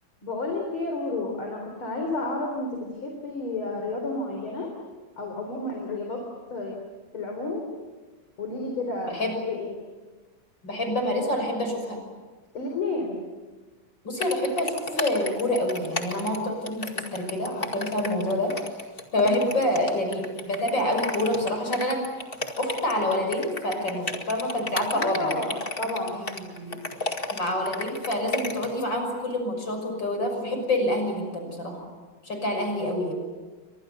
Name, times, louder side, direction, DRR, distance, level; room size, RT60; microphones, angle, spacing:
voice 1, 0.2-4.7 5.2-6.2 6.5-6.8 7.1-7.7 8.4-9.2 9.5-9.7 12.5-13.2 19.2-19.4 24.9-26.2, left 2 dB, 85° left, 2 dB, 4.6 m, -31 dB
voice 2, 10.6-12.0 14.0-18.7 19.1-22.1 22.6-25.4 26.2-26.8 27.3-31.9 32.2-33.1, left 1 dB, 60° left, 4 dB, 6.8 m, -27 dB
sound 1, 14.2-28.8, left 2 dB, 25° left, 2.2 m, -33 dB
30.0 x 25.0 x 6.9 m, 1.3 s
omnidirectional pair, 2.2 m